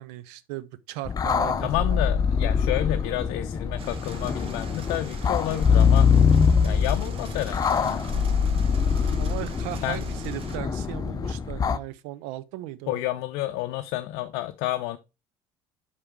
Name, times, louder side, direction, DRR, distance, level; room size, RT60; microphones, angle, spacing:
voice 1, 0.0-2.0 9.2-13.0, right 15 dB, 75° right, 0.6 m, -37 dB
sound 1, 1.1-11.8, left 6 dB, 30° left, 0.6 m, -23 dB
voice 2, 1.6-6.1 6.6-8.2 9.8-10.0 12.9-15.0, left 15 dB, 70° left, 0.5 m, -30 dB
sound 2, 3.8-10.6, right 5 dB, 50° right, 1.2 m, -43 dB
5.7 x 5.0 x 4.6 m
hypercardioid pair, 75°, 12 cm